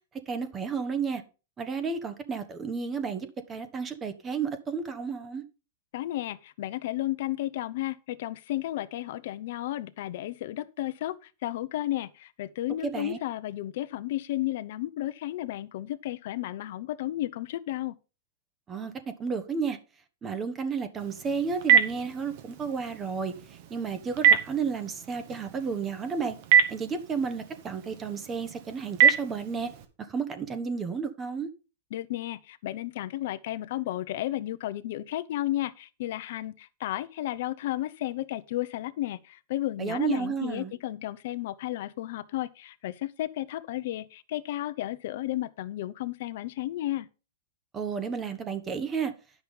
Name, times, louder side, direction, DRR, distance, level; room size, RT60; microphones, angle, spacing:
voice 1, 0.3-1.2 1.6-5.4 12.8-13.2 18.7-19.8 20.2-26.4 26.7-29.7 30.0-31.5 39.8-40.7 47.7-49.1, right 5 dB, 20° right, 1.1 m, -32 dB
voice 2, 5.9-17.9 31.9-47.1, left 14 dB, 60° left, 0.7 m, -33 dB
Telephone, 21.0-29.8, right 8 dB, 50° right, 1.7 m, -27 dB
10.5 x 6.0 x 5.4 m
supercardioid pair, 145°, 0 cm